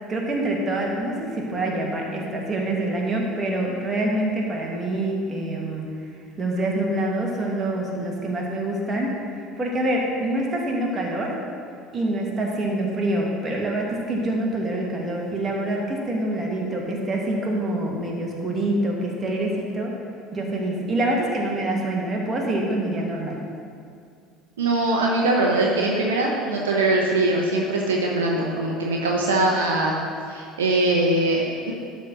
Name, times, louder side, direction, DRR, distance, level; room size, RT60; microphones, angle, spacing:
voice 1, 0.1-5.9 6.4-11.4 11.9-19.9 20.3-23.4, right 1 dB, 30° right, -1 dB, 1.9 m, -26 dB
voice 2, 24.6-29.9 30.3-31.7, right 2 dB, 75° right, -1 dB, 0.9 m, -22 dB
12.0 x 4.1 x 6.1 m, 2.3 s
figure-of-eight pair, 65°, 0 cm